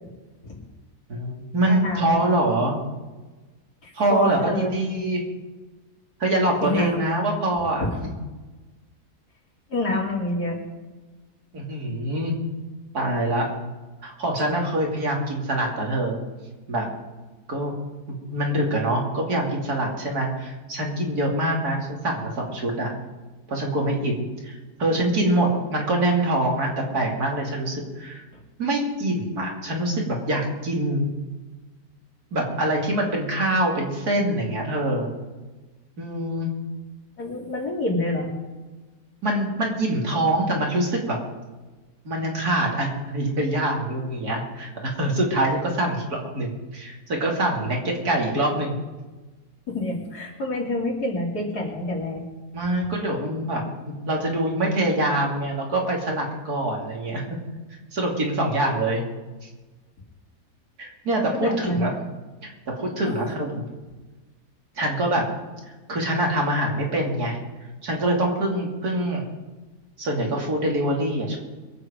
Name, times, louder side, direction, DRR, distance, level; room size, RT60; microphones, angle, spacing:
voice 1, 1.1-2.7 3.9-5.2 6.2-7.9 11.5-12.3 12.9-13.5 14.0-16.2 16.7-16.9 17.5-17.7 18.1-22.9 23.5-28.2 28.6-31.1 32.3-35.1 36.0-36.5 39.2-41.2 42.0-48.7 52.5-57.2 57.9-59.0 60.8-61.9 62.4-62.5 62.8-63.6 64.8-65.3 65.9-67.4 67.8-69.3 70.0-71.4, right 1 dB, 70° right, 0 dB, 3.2 m, -24 dB
voice 2, 1.7-2.2 3.8-5.0 6.6-7.0 7.8-7.9 9.7-10.6 37.2-38.3 49.7-52.2 61.3-62.0 63.1-63.2, left 2 dB, 70° left, -1 dB, 3.4 m, -27 dB
23.0 x 7.9 x 5.2 m, 1.2 s
omnidirectional pair, 1.7 m